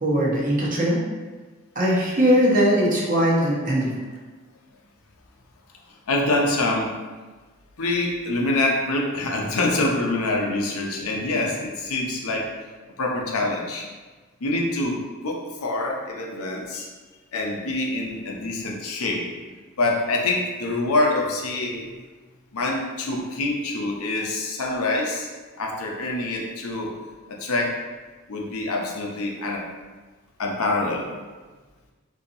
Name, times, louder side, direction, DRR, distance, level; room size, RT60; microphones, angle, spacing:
voice 1, 0.0-1.0 1.8-4.0, equal, 40° right, -5 dB, 0.8 m, -20 dB
voice 2, 6.1-6.9 7.8-12.5 13.0-13.9 14.4-16.9 17.3-19.2 19.8-21.9 22.5-25.3 25.6-26.9 27.3-27.8 28.3-29.6 30.4-31.1, left 2 dB, 90° left, 0 dB, 0.6 m, -25 dB
3.9 x 2.8 x 2.7 m, 1.3 s
head